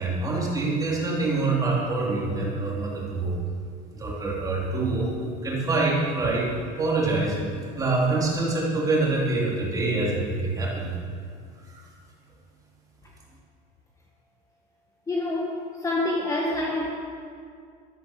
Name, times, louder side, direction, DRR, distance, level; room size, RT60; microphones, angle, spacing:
voice 1, 0.0-3.4 3.9-6.5 6.8-11.0 11.7-11.8, right 3 dB, 20° right, -4 dB, 3.5 m, -25 dB
voice 2, 15.1-16.9, left 2 dB, 15° left, -2 dB, 1.7 m, -27 dB
13.0 x 13.0 x 6.6 m, 2.2 s
cardioid pair, 150°, 20 cm